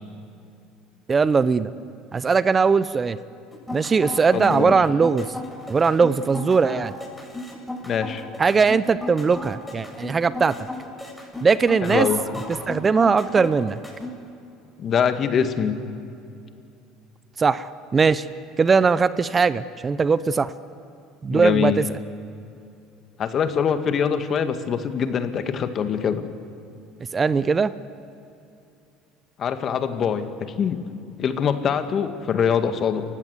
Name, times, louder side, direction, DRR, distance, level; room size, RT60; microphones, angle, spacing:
voice 1, 1.1-1.7 2.1-3.2 3.7-5.3 5.7-6.9 8.4-10.5 11.4-12.1 12.7-13.8 17.4-18.3 18.6-20.5 21.2-21.8 27.1-27.7, right 5 dB, 30° right, 16 dB, 0.7 m, -20 dB
sound 1, 3.5-14.1, left 2 dB, 5° left, 7.9 m, -35 dB
voice 2, 4.3-4.8 7.8-8.2 11.9-12.2 14.8-15.8 21.3-21.9 23.2-26.2 29.4-30.3 30.6-30.8 31.2-33.0, left 7 dB, 45° left, 8 dB, 1.8 m, -23 dB
29.0 x 15.5 x 8.2 m, 2.6 s
hypercardioid pair, 70°, 0 cm